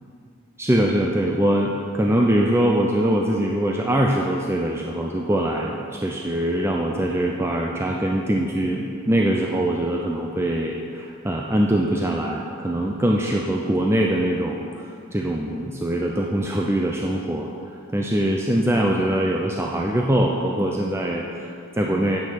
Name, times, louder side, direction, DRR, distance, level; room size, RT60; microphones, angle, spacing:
voice 1, 0.6-14.8 15.1-17.5 17.9-22.2, right 1 dB, 10° right, 0 dB, 0.5 m, -22 dB
9.2 x 8.7 x 5.7 m, 2.4 s
head